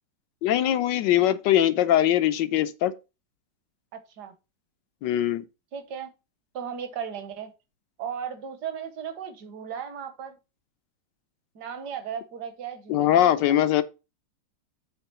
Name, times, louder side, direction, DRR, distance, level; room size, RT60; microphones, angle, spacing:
voice 1, 0.4-2.9 5.0-5.4 12.9-13.8, left 12 dB, 80° left, 1.3 m, -21 dB
voice 2, 3.9-4.3 5.7-6.1 6.5-7.5 8.0-10.4 11.5-13.7, right 8 dB, 65° right, 1.6 m, -36 dB
8.0 x 3.7 x 5.4 m
omnidirectional pair, 2.0 m